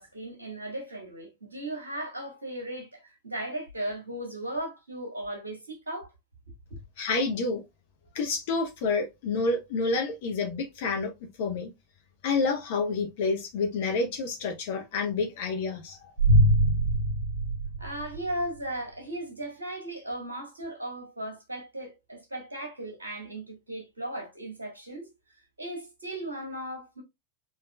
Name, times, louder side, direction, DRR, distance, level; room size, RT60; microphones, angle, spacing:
voice 1, 0.0-6.1 17.8-25.1 25.6-27.0, right 1 dB, 75° right, 1.7 m, -36 dB
voice 2, 7.0-7.6 8.1-11.1 11.4-11.7 12.2-16.0, left 3 dB, 50° left, 0.8 m, -28 dB
sound 1, 16.2-18.4, right 1 dB, 85° left, 1.7 m, -23 dB
3.9 x 3.6 x 2.3 m
figure-of-eight pair, 90°, 0 cm